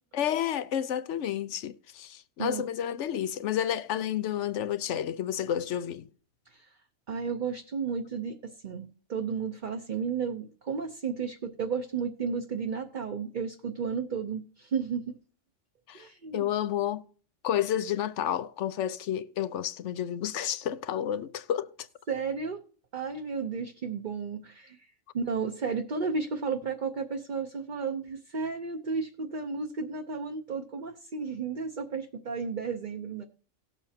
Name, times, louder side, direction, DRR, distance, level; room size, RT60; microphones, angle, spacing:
voice 1, 0.1-6.1 15.9-16.0 16.3-17.1 17.4-21.9, left 10 dB, 75° left, 1.0 m, -30 dB
voice 2, 7.1-15.1 15.9-16.5 22.1-22.6 22.9-33.2, right 5 dB, 45° right, 0.9 m, -33 dB
18.5 x 7.3 x 2.8 m
omnidirectional pair, 1.3 m